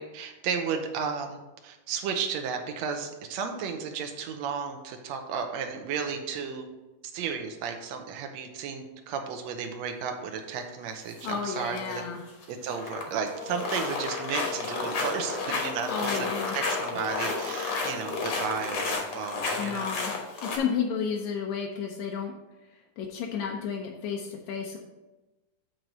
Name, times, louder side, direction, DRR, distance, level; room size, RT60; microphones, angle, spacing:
voice 1, 0.0-6.6 7.1-12.0 12.5-20.0, right 6 dB, 80° right, 5 dB, 1.6 m, -33 dB
sound 1, 10.4-11.1 13.0-14.0 14.3-19.0, equal, 20° right, 1.6 m, -44 dB
sound 2, 11.1-11.3 11.7-12.0 12.3-13.1 13.4-20.6, left 3 dB, 60° left, 2.0 m, -32 dB
voice 2, 11.2-12.2 15.8-16.6 19.6-20.1 20.4-22.3 23.0-24.8, left 7 dB, 75° left, 0 dB, 1.7 m, -32 dB
sound 3, 12.6-19.2, left 8 dB, 55° right, 1.0 m, -41 dB
7.7 x 4.6 x 5.2 m, 1.1 s
omnidirectional pair, 3.9 m